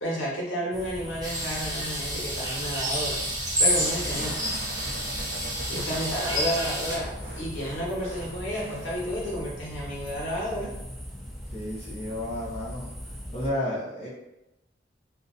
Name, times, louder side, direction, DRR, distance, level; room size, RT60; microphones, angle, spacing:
voice 1, 0.0-3.2 3.6-4.4 5.7-10.7, equal, 70° left, -5 dB, 1.1 m, -31 dB
sound 1, 0.7-13.5, equal, ahead, 0.4 m, -39 dB
sound 2, 1.2-7.0, equal, 20° right, 0.8 m, -29 dB
sound 3, 3.8-9.6, right 1 dB, 50° right, 0.5 m, -43 dB
voice 2, 4.1-4.5 11.5-12.9 13.3-14.1, left 1 dB, 35° left, -8 dB, 0.7 m, -32 dB
2.6 x 2.0 x 3.8 m, 0.91 s
head